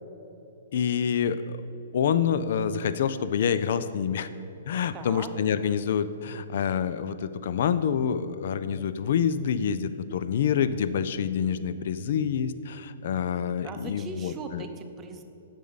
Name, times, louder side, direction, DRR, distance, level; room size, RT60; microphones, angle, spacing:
voice 1, 0.7-1.6 1.9-4.3 4.7-14.6, left 7 dB, 60° left, 13 dB, 0.4 m, -27 dB
voice 2, 4.9-5.3 13.6-15.2, right 5 dB, 25° right, 6 dB, 0.7 m, -40 dB
9.2 x 6.5 x 4.0 m, 2.9 s
hypercardioid pair, 120°, 0 cm